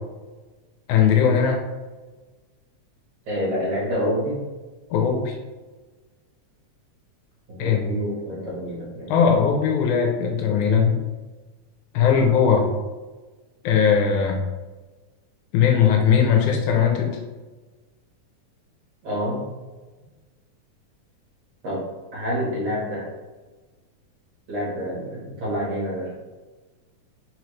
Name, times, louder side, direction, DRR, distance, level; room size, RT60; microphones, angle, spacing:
voice 1, 0.9-1.6 4.9-5.4 7.6-7.8 9.1-11.0 11.9-12.7 13.6-14.4 15.5-17.1, left 7 dB, 80° left, 1 dB, 2.0 m, -19 dB
voice 2, 3.3-4.4 7.5-9.1 19.0-19.4 21.6-21.8 22.1-23.1 24.5-26.2, equal, 60° right, -6 dB, 2.3 m, -27 dB
5.0 x 3.1 x 3.0 m, 1.2 s
omnidirectional pair, 3.6 m